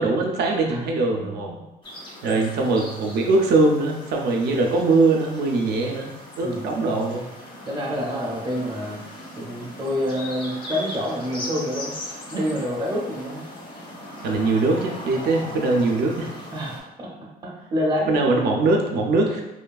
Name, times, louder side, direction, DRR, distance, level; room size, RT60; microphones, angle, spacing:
voice 1, 0.0-1.5 2.2-7.2 14.2-16.3 18.1-19.4, right 3 dB, 75° right, 0 dB, 0.4 m, -21 dB
voice 2, 1.2-1.6 2.3-2.6 6.4-6.7 7.7-9.0 9.3-11.9 12.3-13.5 16.5-17.1 17.4-18.1, equal, 25° right, -2 dB, 0.5 m, -27 dB
sound 1, 1.8-16.8, left 1 dB, 30° left, 0.5 m, -39 dB
3.1 x 2.3 x 2.3 m, 0.97 s
cardioid pair, 170°, 17 cm